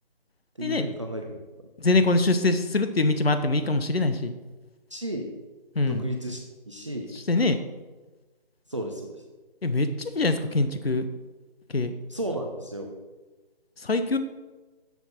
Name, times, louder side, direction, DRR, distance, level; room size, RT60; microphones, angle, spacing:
voice 1, 0.6-1.7 2.0-2.1 4.9-5.3 5.8-7.1 8.7-9.2 12.1-12.9, right 1 dB, 30° right, 2 dB, 0.5 m, -34 dB
voice 2, 1.8-4.3 5.8-6.0 7.3-7.6 9.6-11.1 11.7-11.9 13.8-14.2, left 2 dB, 80° left, 10 dB, 0.7 m, -23 dB
7.3 x 7.1 x 4.3 m, 1.2 s
figure-of-eight pair, 155°, 30 cm